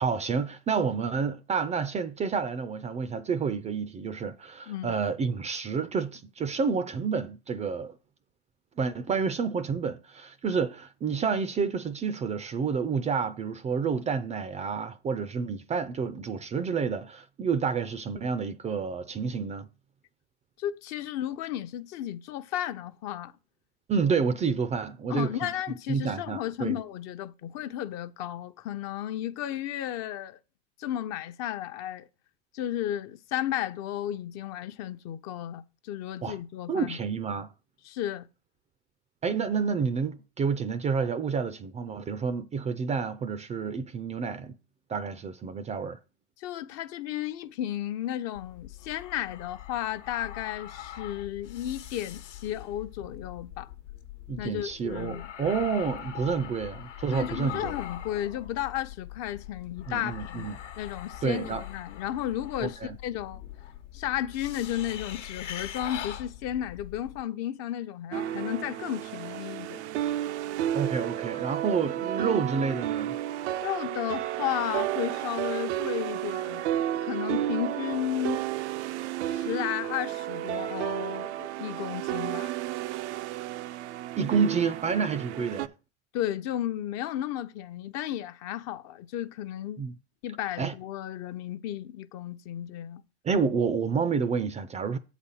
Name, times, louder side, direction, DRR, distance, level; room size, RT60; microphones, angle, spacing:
voice 1, 0.0-7.9 8.8-19.7 23.9-25.5 25.9-26.8 36.2-36.4 36.7-37.5 39.2-44.6 44.9-46.0 54.3-57.7 59.9-60.6 61.2-61.6 62.6-63.0 70.7-73.2 84.2-85.7 89.8-89.9 90.6-90.7 93.2-95.0, right 5 dB, 20° right, 0.4 m, -29 dB
voice 2, 4.7-5.0 20.6-23.3 25.1-30.4 30.8-32.1 32.5-37.0 37.8-38.3 46.4-53.7 54.4-55.3 57.1-60.5 60.8-63.4 63.9-69.8 73.6-76.6 77.0-78.4 79.3-82.5 86.1-89.8 90.2-93.0, left 12 dB, 50° left, 0.7 m, -33 dB
sound 1, 48.3-67.2, left 11 dB, 80° left, 1.2 m, -42 dB
sound 2, 68.1-85.7, right 13 dB, 70° right, 0.5 m, -32 dB
8.1 x 4.1 x 5.5 m
hypercardioid pair, 95°, 35 cm